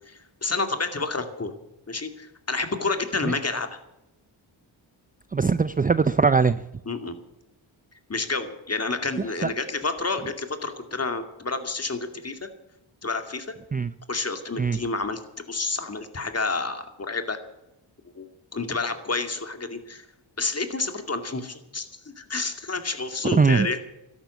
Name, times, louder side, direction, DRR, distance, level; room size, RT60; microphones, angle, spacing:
voice 1, 0.0-1.5 1.9-3.8 6.9-7.1 8.1-12.5 13.0-13.5 14.1-15.2 15.5-17.4 18.2-20.1 20.4-23.8, left 3 dB, 30° left, 7 dB, 2.4 m, -29 dB
voice 2, 5.3-6.6 9.4-9.5 13.7-13.9 14.6-14.8 23.2-23.7, right 5 dB, 20° right, 14 dB, 0.5 m, -20 dB
13.0 x 11.5 x 8.2 m, 0.89 s
cardioid pair, 75°, 47 cm